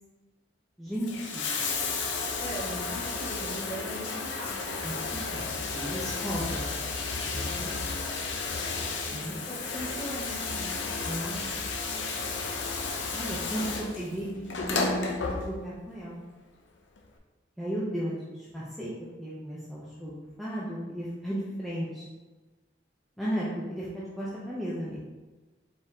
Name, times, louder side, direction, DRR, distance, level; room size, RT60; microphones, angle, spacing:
voice 1, 0.8-1.5 4.8-6.7 7.3-7.9 9.1-9.4 11.0-11.4 13.1-13.6 13.9-16.2 17.6-18.9 19.2-22.0 23.2-25.0, equal, ahead, -9 dB, 0.6 m, -35 dB
Bathtub (filling or washing), 0.9-15.9 17.0-17.1, left 4 dB, 75° left, 0.6 m, -33 dB
voice 2, 2.4-4.7 9.1-10.7 11.3-11.6, right 1 dB, 30° left, -7 dB, 1.4 m, -40 dB
4.7 x 3.6 x 2.8 m, 1.2 s
head